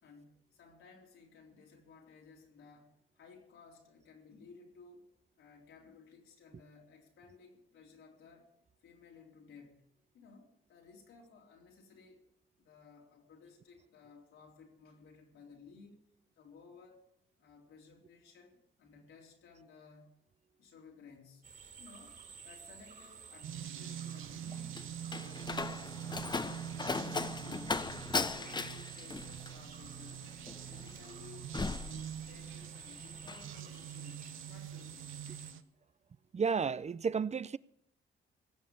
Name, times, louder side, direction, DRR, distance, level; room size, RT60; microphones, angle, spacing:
voice 1, 0.0-5.1 5.4-8.5 8.8-9.9 10.1-12.2 12.6-16.0 16.4-17.0 17.4-20.1 20.6-27.8 28.1-30.4 30.7-31.5 31.8-35.4, left 5 dB, 85° left, 4.0 m, -57 dB
sound 1, 21.4-35.5, right 6 dB, 55° right, 3.8 m, -52 dB
sound 2, 23.4-35.6, right 10 dB, 80° right, 0.8 m, -45 dB
Slam, 24.2-32.7 33.0-33.5, left 3 dB, 20° left, 0.7 m, -38 dB
voice 2, 36.3-37.6, right 6 dB, 35° right, 0.5 m, -32 dB
17.5 x 7.6 x 8.6 m
cardioid pair, 70°, 20 cm